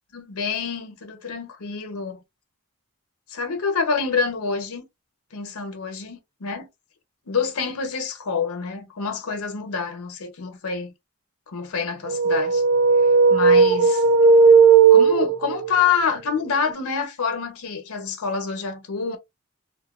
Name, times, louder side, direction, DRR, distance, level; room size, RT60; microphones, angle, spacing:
voice 1, 0.1-2.2 3.3-4.8 5.3-6.7 7.3-10.9 11.5-12.6 13.3-14.0 14.9-19.2, left 5 dB, 85° left, 0.8 m, -27 dB
sound 1, 12.1-15.7, right 5 dB, 90° right, 0.4 m, -15 dB
2.7 x 2.3 x 2.4 m
head